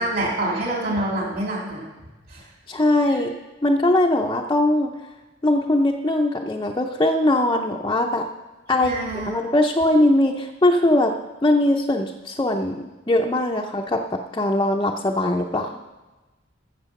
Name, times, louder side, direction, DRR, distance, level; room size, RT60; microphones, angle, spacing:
voice 1, 0.0-1.8 2.3-2.4 8.7-9.3, right 1 dB, 50° right, -3 dB, 3.6 m, -26 dB
voice 2, 2.7-3.3 3.6-4.9 5.4-8.3 8.7-11.2 11.4-15.8, left 1 dB, 20° left, 0 dB, 0.6 m, -21 dB
13.0 x 7.4 x 5.8 m, 1.2 s
head